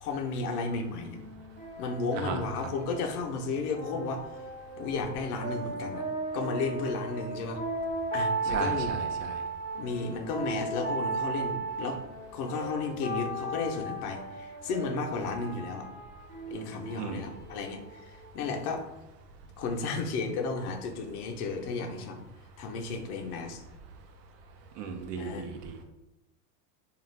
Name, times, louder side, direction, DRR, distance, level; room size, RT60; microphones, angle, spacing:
voice 1, 0.0-1.2 1.8-4.2 4.8-6.0 6.3-7.6 8.1-8.9 9.8-12.0 12.3-15.9 16.5-18.8 19.6-22.2 22.6-23.6 25.2-25.5, left 4 dB, 65° left, 3 dB, 0.7 m, -33 dB
sound 1, 1.0-18.5, right 2 dB, 25° left, 0.5 m, -36 dB
voice 2, 2.1-2.7 8.5-9.3 17.0-17.3 24.8-25.8, right 5 dB, 75° right, 5 dB, 0.7 m, -36 dB
2.4 x 2.4 x 3.2 m, 0.96 s
supercardioid pair, 130°, 49 cm